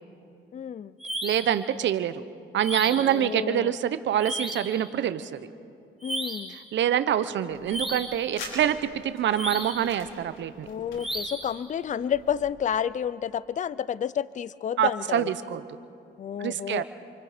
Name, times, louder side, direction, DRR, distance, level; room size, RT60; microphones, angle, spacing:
voice 1, 0.5-0.9 2.9-3.7 6.0-6.6 10.7-15.3 16.2-16.8, left 8 dB, 40° left, 18 dB, 0.5 m, -30 dB
sound 1, 1.0-1.6 2.6-3.2 4.2-4.8 6.0-6.6 7.7-8.2 9.3-9.9 11.0-11.5, right 1 dB, ahead, 4.0 m, -34 dB
voice 2, 1.2-2.2 2.5-5.4 6.5-8.8 9.0-10.7 14.8-15.6 16.4-16.8, right 10 dB, 65° right, 12 dB, 0.9 m, -26 dB
sound 2, 7.5-12.5, left 3 dB, 75° left, 5.5 m, -46 dB
28.0 x 25.0 x 5.1 m, 2.4 s
cardioid pair, 90°, 20 cm